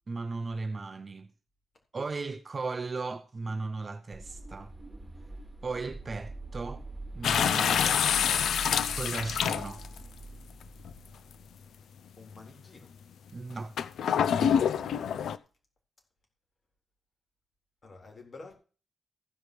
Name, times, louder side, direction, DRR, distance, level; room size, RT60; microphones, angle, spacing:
voice 1, 0.1-1.3 1.9-4.7 5.6-6.8 7.1-8.5 8.9-9.8 13.3-13.8, right 3 dB, 30° right, 0.7 m, -36 dB
sound 1, 4.1-11.5, right 2 dB, 10° right, 2.9 m, -44 dB
sound 2, 7.2-10.0 10.8-10.9 13.8-15.4, left 8 dB, 85° left, 0.6 m, -26 dB
voice 2, 12.2-12.9 17.8-18.5, left 3 dB, 35° left, 3.9 m, -49 dB
15.0 x 5.2 x 6.3 m
wide cardioid pair, 165°, 0 cm